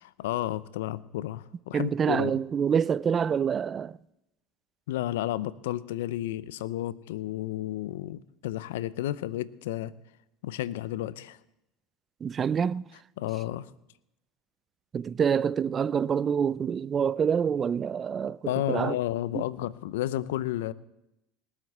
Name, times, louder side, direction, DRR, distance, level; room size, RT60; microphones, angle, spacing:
voice 1, 0.0-2.4 4.9-9.9 10.4-11.4 13.2-13.7 18.4-20.7, left 14 dB, 80° left, 0.6 m, -32 dB
voice 2, 1.7-4.0 12.2-12.9 14.9-18.4 18.7-19.0 19.3-19.4, right 7 dB, 35° right, 0.4 m, -26 dB
18.5 x 7.5 x 8.0 m
hypercardioid pair, 95°, 0 cm